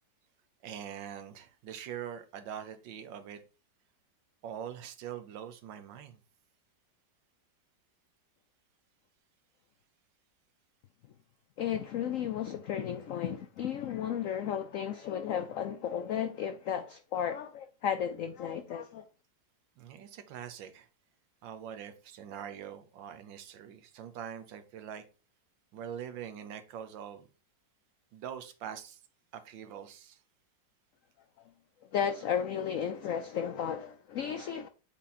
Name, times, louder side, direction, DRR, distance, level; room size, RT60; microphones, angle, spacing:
voice 1, 0.6-3.4 4.4-6.2 19.8-20.9 21.4-25.0 25.7-27.3 28.1-29.0 29.3-30.2, right 9 dB, 90° right, 1.5 m, -43 dB
voice 2, 11.6-19.0 31.9-34.7, left 8 dB, 80° left, 0.7 m, -34 dB
8.3 x 3.8 x 4.1 m
omnidirectional pair, 2.0 m